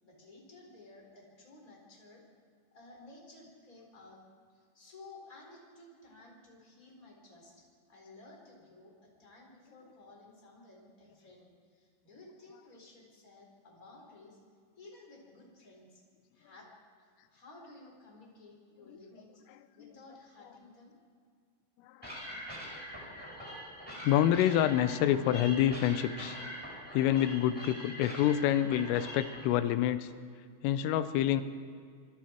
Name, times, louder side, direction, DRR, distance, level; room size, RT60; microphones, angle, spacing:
voice 1, 0.0-2.2 2.7-4.2 4.5-14.4 14.8-16.0 16.3-19.4 19.7-21.0, left 2 dB, 20° left, -1 dB, 4.0 m, -55 dB
voice 2, 21.8-22.2 24.0-26.4 26.9-30.1 30.6-31.4, left 11 dB, 80° left, 12 dB, 3.4 m, -27 dB
sound 1, 22.0-29.4, equal, 5° right, 4.5 m, -44 dB
25.5 x 24.0 x 4.5 m, 2.1 s
omnidirectional pair, 5.9 m